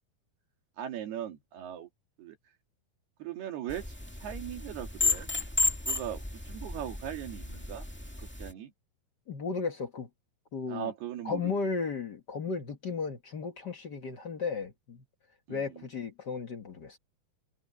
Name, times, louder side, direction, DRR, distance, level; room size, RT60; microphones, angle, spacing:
voice 1, 0.8-1.9 2.2-2.4 3.2-4.0 4.2-5.3 5.9-7.9 8.4-8.7 10.7-11.5 15.5-15.9, right 10 dB, 90° right, 4.4 m, -39 dB
sound 1, 3.7-8.5, left 3 dB, 10° left, 0.6 m, -33 dB
voice 2, 9.3-10.1 10.5-10.9 11.2-15.0 15.5-17.0, left 5 dB, 90° left, 0.9 m, -34 dB
omnidirectional pair, 4.4 m